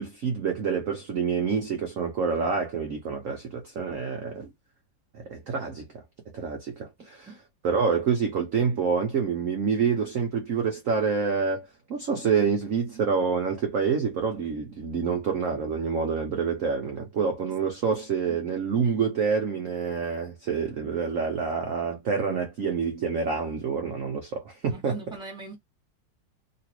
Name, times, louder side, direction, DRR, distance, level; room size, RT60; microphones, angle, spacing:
voice 1, 0.0-4.5 5.1-6.0 6.3-7.3 7.6-25.0, right 6 dB, 60° right, 0.9 m, -27 dB
voice 2, 24.7-25.6, right 4 dB, 5° right, 1.3 m, -40 dB
3.2 x 2.8 x 3.0 m
omnidirectional pair, 2.3 m